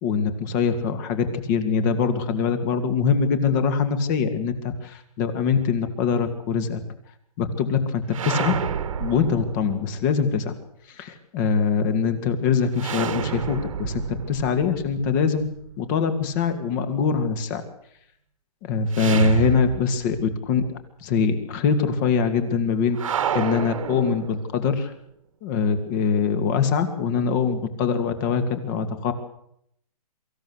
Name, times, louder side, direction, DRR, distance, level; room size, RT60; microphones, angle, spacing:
voice 1, 0.0-6.8 7.4-8.6 9.0-10.6 10.9-15.5 15.8-17.6 18.6-20.6 21.0-23.0 23.3-24.9 25.4-29.1, left 6 dB, 30° left, 9 dB, 2.4 m, -23 dB
sound 1, 8.1-10.1 12.8-15.8 18.9-20.3 20.6-20.7 22.9-24.7, right 7 dB, 60° right, 1.9 m, -30 dB
24.0 x 14.5 x 8.1 m, 0.70 s
hypercardioid pair, 155°, 20 cm